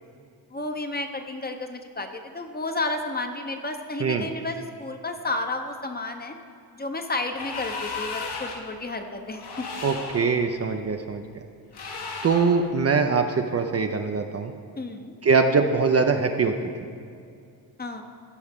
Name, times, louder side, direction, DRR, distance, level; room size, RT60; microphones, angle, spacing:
voice 1, 0.5-6.4 6.7-9.7 14.8-15.1 17.8-18.0, left 2 dB, 20° left, 5 dB, 0.8 m, -32 dB
sound 1, 7.3-8.7 9.4-10.4 11.7-12.6, left 4 dB, 60° left, 1.3 m, -35 dB
voice 2, 9.8-11.2 12.2-14.5 15.2-16.5, right 4 dB, 35° right, 5 dB, 0.5 m, -22 dB
14.5 x 5.4 x 3.6 m, 2.4 s
cardioid pair, 75°, 44 cm